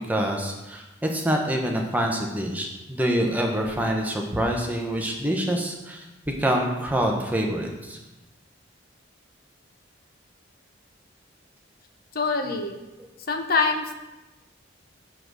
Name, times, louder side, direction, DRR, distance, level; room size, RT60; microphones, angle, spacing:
voice 1, 0.1-6.1 6.4-8.0, right 1 dB, 10° right, 1 dB, 0.9 m, -26 dB
voice 2, 12.1-12.8 13.3-14.0, left 4 dB, 50° left, 5 dB, 0.8 m, -24 dB
6.3 x 5.7 x 6.6 m, 1.0 s
head